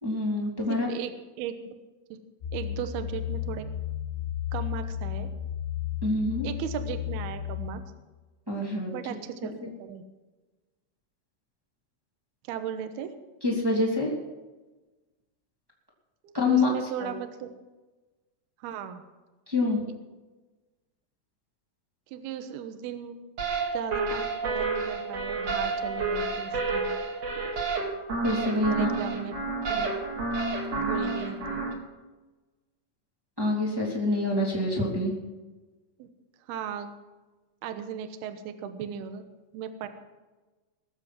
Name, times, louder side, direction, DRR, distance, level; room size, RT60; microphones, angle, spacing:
voice 1, 0.0-0.9 6.0-6.5 8.5-8.9 9.6-9.7 13.4-14.1 16.3-16.7 17.0-17.2 19.5-19.8 28.2-28.9 33.4-35.1, left 2 dB, 15° right, -3 dB, 0.7 m, -26 dB
voice 2, 0.7-1.7 2.1-2.2 2.5-3.7 4.5-5.3 6.4-7.8 8.9-10.0 12.5-13.1 16.2-17.5 18.6-19.0 22.1-23.2 23.7-26.9 28.7-29.3 29.7-29.9 30.8-31.7 36.0-36.1 36.5-36.9 37.6-39.2 39.5-39.9, right 8 dB, 75° right, 8 dB, 2.4 m, -37 dB
sound 1, 2.4-7.7, left 10 dB, 85° left, 5.4 m, -33 dB
sound 2, 23.4-31.7, right 3 dB, 45° right, 2.4 m, -30 dB
21.0 x 7.7 x 6.0 m, 1.2 s
omnidirectional pair, 5.8 m